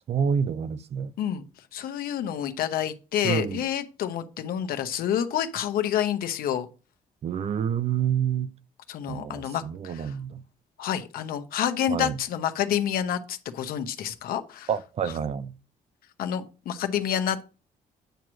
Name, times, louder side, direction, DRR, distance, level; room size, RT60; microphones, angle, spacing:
voice 1, 0.1-1.1 3.2-3.6 7.2-8.5 9.1-10.4 11.9-12.2 14.7-15.5, right 7 dB, 45° right, 0.5 m, -28 dB
voice 2, 1.7-6.7 8.9-10.1 10.8-14.7 16.2-17.4, left 9 dB, 80° left, 1.0 m, -28 dB
9.1 x 3.1 x 6.2 m
cardioid pair, 140°, 15 cm